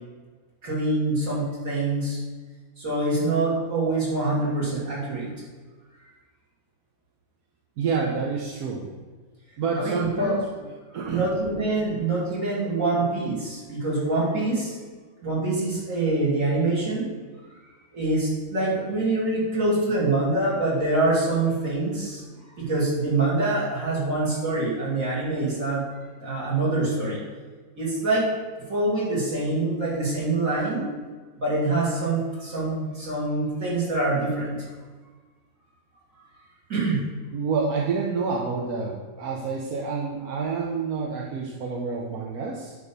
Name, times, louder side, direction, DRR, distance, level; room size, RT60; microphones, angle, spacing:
voice 1, 0.6-2.2 2.8-5.3 9.8-10.4 11.0-14.8 15.2-17.1 17.9-22.2 22.6-25.8 26.2-27.2 27.8-28.3 28.7-30.9 31.3-34.7 36.7-37.0, right 2 dB, 60° right, -7 dB, 3.4 m, -25 dB
voice 2, 7.8-8.9 9.6-11.2 37.3-42.8, right 4 dB, 85° right, -2 dB, 1.4 m, -28 dB
9.9 x 3.7 x 7.3 m, 1.4 s
omnidirectional pair, 1.6 m